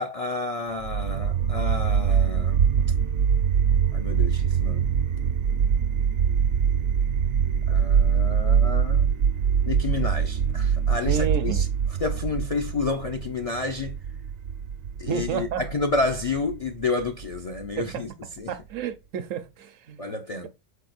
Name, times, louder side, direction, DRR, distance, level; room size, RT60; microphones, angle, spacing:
voice 1, 0.0-2.6 3.9-4.9 7.7-9.1 9.7-14.0 15.0-18.1 18.4-18.6 20.0-20.5, left 3 dB, 55° left, 0.4 m, -30 dB
sound 1, 0.8-17.8, right 7 dB, 60° right, 0.7 m, -24 dB
voice 2, 11.0-11.6 15.1-15.6 17.8-18.0 18.5-20.2, right 8 dB, 80° right, 1.1 m, -30 dB
4.9 x 4.5 x 2.4 m
omnidirectional pair, 1.3 m